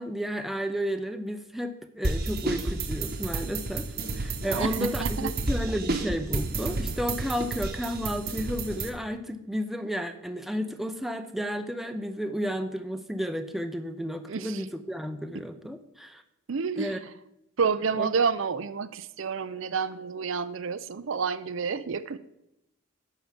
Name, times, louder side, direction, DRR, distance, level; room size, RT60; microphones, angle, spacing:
voice 1, 0.0-16.2 16.8-17.0 18.0-18.1, equal, ahead, 7 dB, 0.6 m, -32 dB
sound 1, 2.0-8.9, right 2 dB, 45° right, 1.1 m, -31 dB
voice 2, 4.5-5.3 14.3-14.6 15.3-15.5 16.5-17.0 17.6-22.2, right 5 dB, 65° right, 13 dB, 0.5 m, -29 dB
11.5 x 4.7 x 7.4 m, 0.85 s
head